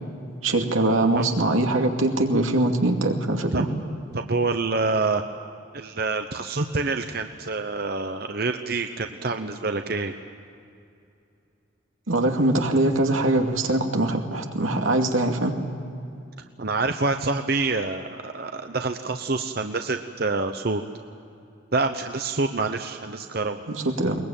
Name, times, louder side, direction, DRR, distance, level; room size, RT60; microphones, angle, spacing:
voice 1, 0.4-3.7 12.1-15.5 23.7-24.2, right 2 dB, 90° right, 3 dB, 2.5 m, -22 dB
voice 2, 4.1-5.2 5.7-10.1 16.6-20.8 21.7-23.6, right 3 dB, 50° right, 6 dB, 0.9 m, -26 dB
22.0 x 21.0 x 8.9 m, 2.5 s
head